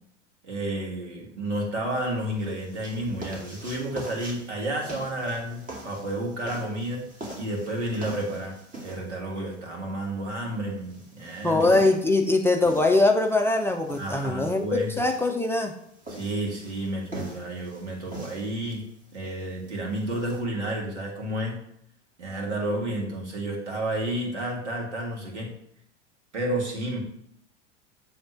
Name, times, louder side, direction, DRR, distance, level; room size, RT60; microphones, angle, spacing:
voice 1, 0.4-7.0 7.4-11.6 14.0-14.9 16.1-18.8 19.1-21.6 22.2-25.5 26.3-27.0, right 1 dB, 80° right, 0 dB, 2.0 m, -31 dB
sound 1, 1.8-20.4, right 1 dB, 20° right, 2.2 m, -43 dB
voice 2, 11.4-15.8, left 2 dB, 5° left, 3 dB, 0.5 m, -22 dB
7.9 x 3.5 x 5.7 m, 0.71 s
figure-of-eight pair, 85°, 35 cm